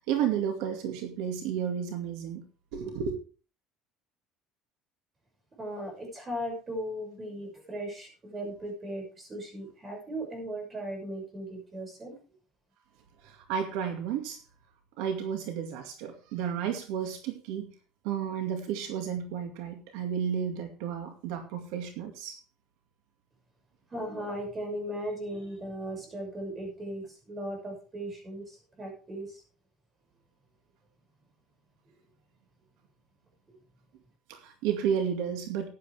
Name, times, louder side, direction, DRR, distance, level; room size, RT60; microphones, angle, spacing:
voice 1, 0.1-2.4 2.7-3.2 13.2-14.4 15.0-17.7 18.0-22.4 34.3-35.7, right 8 dB, 80° right, 6 dB, 2.1 m, -32 dB
voice 2, 5.6-12.1 23.9-29.4, right 1 dB, 20° right, 2 dB, 6.2 m, -37 dB
14.5 x 10.5 x 3.5 m, 0.35 s
cardioid pair, 140°, 0 cm